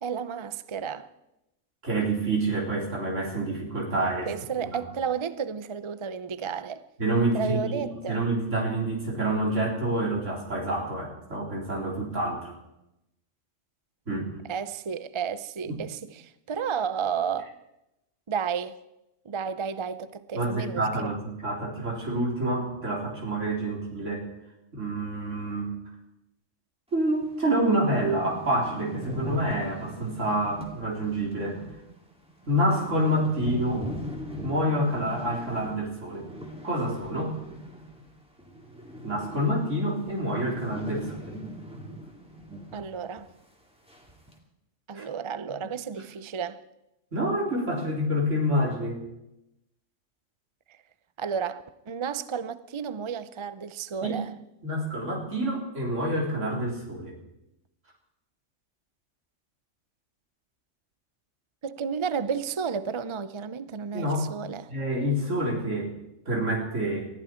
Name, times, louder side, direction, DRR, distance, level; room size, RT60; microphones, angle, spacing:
voice 1, 0.0-1.1 4.3-6.8 7.3-8.2 14.5-17.5 18.3-18.8 19.2-21.2 42.7-43.3 44.9-46.6 50.7-50.8 51.2-54.3 61.6-64.7, right 6 dB, 40° right, 0.4 m, -32 dB
voice 2, 1.8-4.3 4.6-4.8 7.0-12.6 14.1-14.3 15.7-15.8 20.3-24.3 24.7-25.7 26.9-31.6 32.5-33.9 34.4-36.3 36.6-37.3 39.0-41.4 44.9-45.0 47.1-49.0 54.0-54.1 54.6-57.2 63.9-64.3 64.7-65.9 66.3-67.1, right 1 dB, 70° right, 3.9 m, -27 dB
sound 1, 27.2-27.3 27.6-27.7 27.9-38.1 38.4-42.9 43.2-43.3 43.9-44.3, equal, 5° right, 2.3 m, -39 dB
20.0 x 14.0 x 4.4 m
omnidirectional pair, 1.3 m